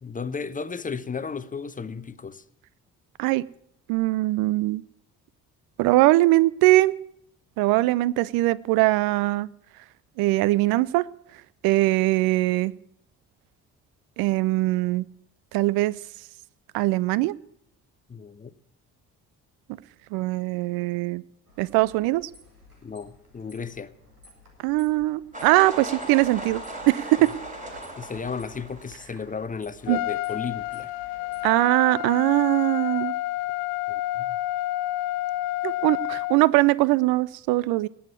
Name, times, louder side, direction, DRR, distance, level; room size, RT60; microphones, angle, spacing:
voice 1, 0.0-2.4 18.1-18.5 22.8-23.9 28.0-30.9 33.9-34.4, left 5 dB, 20° left, 0.7 m, -34 dB
voice 2, 3.9-4.8 5.8-6.9 7.6-9.5 10.2-11.1 11.6-12.7 14.2-15.1 15.5-15.9 16.7-17.3 20.1-21.2 21.6-22.2 24.6-26.6 26.9-27.2 29.9-30.0 31.4-33.1 35.6-37.9, right 19 dB, 55° right, 0.6 m, -21 dB
sound 1, 21.5-31.5, left 2 dB, 90° right, 2.2 m, -53 dB
sound 2, 25.3-29.1, right 1 dB, 15° right, 3.6 m, -37 dB
Trumpet, 29.9-36.4, left 17 dB, 55° left, 0.6 m, -29 dB
18.5 x 7.2 x 8.3 m
figure-of-eight pair, 45°, 44 cm